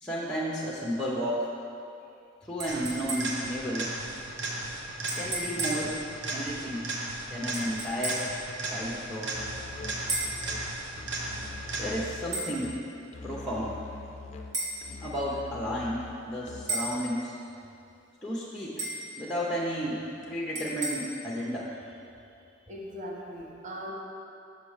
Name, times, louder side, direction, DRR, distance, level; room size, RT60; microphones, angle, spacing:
voice 1, 0.0-1.5 2.4-3.9 5.2-6.0 6.3-6.9 7.3-8.3 8.7-9.4 11.8-12.8 13.2-13.8 15.0-17.4 18.2-18.9 19.2-20.0 20.3-21.7, equal, 5° left, -6 dB, 0.7 m, -32 dB
sound 1, 2.6-3.5 5.1-5.9 7.5-8.4 10.1-10.4 12.3-12.5 14.5-14.8 16.7-17.0 18.8-19.1 20.5-20.9, right 2 dB, 85° right, 1.7 m, -33 dB
sound 2, 2.7-12.3 20.2-20.3, right 2 dB, 60° right, 0.9 m, -36 dB
Musical instrument, 9.3-16.9, left 3 dB, 35° left, 0.5 m, -44 dB
voice 2, 22.7-23.9, equal, 40° right, -3 dB, 1.0 m, -39 dB
6.7 x 6.3 x 4.9 m, 2.6 s
head